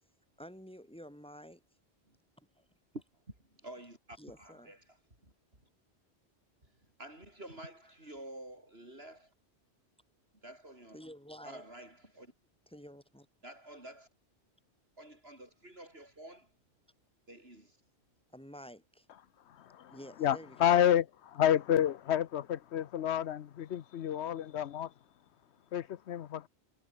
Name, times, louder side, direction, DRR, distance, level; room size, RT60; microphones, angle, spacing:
voice 1, 0.4-1.6 2.6-2.7 4.2-4.7 10.9-11.6 12.7-13.3 18.3-19.1 19.9-20.8, equal, 5° left, 6.8 m, -50 dB
voice 2, 3.6-5.3 6.6-9.3 10.4-11.0 11.4-12.3 13.4-14.1 15.0-16.5 17.3-17.8, right 1 dB, 65° right, 7.7 m, -50 dB
voice 3, 19.6-19.9 20.2-24.9 25.7-26.5, left 10 dB, 85° left, 1.0 m, -29 dB
omnidirectional pair, 1.1 m